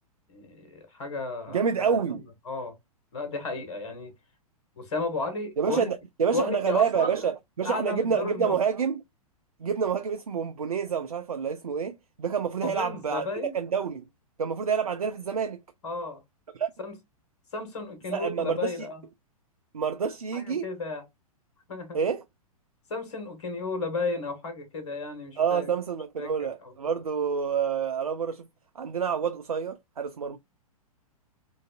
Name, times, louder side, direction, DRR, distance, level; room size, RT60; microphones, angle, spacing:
voice 1, 0.3-2.8 3.1-4.1 4.8-5.9 6.3-7.2 7.6-8.6 12.6-13.5 15.8-16.2 16.8-16.9 17.5-19.0 20.3-21.0 21.7-22.0 22.9-25.7 26.2-26.7, left 3 dB, 50° left, 1.6 m, -33 dB
voice 2, 1.5-2.2 5.6-9.0 9.6-14.1 14.4-15.6 16.5-16.7 18.1-18.9 19.7-20.7 21.9-22.2 25.4-28.5 28.8-30.4, right 6 dB, 75° right, 0.5 m, -28 dB
3.8 x 2.5 x 2.4 m
figure-of-eight pair, 110°, 19 cm